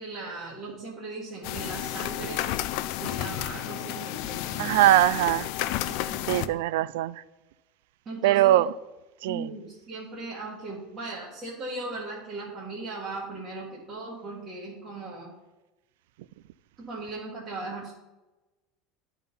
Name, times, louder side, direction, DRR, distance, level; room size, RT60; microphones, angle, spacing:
voice 1, 0.0-2.6 3.0-4.7 5.9-6.3 8.0-8.6 9.2-15.3 16.9-17.9, right 2 dB, 25° right, 1.5 m, -38 dB
sound 1, 1.4-6.5, left 14 dB, 60° left, 0.4 m, -32 dB
voice 2, 4.6-5.5 6.3-7.2 8.2-8.7 9.2-9.5, right 14 dB, 80° right, 0.3 m, -22 dB
11.0 x 3.9 x 5.4 m
cardioid pair, 160°, 0 cm